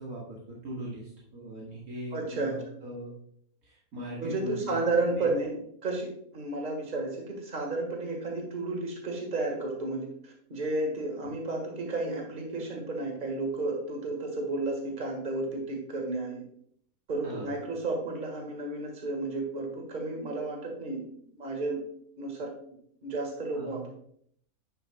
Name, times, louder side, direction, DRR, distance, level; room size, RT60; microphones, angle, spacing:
voice 1, 0.0-3.1 3.6-4.8 5.2-5.3 11.2-11.3 17.2-17.5 23.5-23.8, right 1 dB, 80° right, -5 dB, 2.3 m, -40 dB
voice 2, 2.1-2.8 4.2-16.4 17.1-21.1 21.4-21.8 22.2-22.5 23.0-23.9, right 2 dB, 35° right, 1 dB, 1.8 m, -32 dB
10.5 x 6.8 x 2.3 m, 0.65 s
omnidirectional pair, 1.5 m